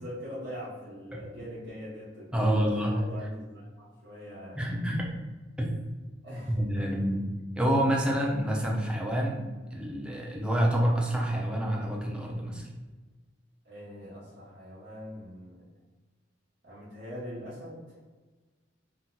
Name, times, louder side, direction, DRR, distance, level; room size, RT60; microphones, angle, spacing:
voice 1, 0.0-4.7 6.2-6.9 13.6-15.6 16.6-18.0, equal, 70° right, -10 dB, 1.0 m, -42 dB
voice 2, 2.3-3.0 4.6-5.1 5.6-5.7 6.6-7.2 7.6-9.4 9.7-12.7, equal, 5° right, -2 dB, 0.4 m, -27 dB
2.7 x 2.2 x 3.7 m, 1.3 s
head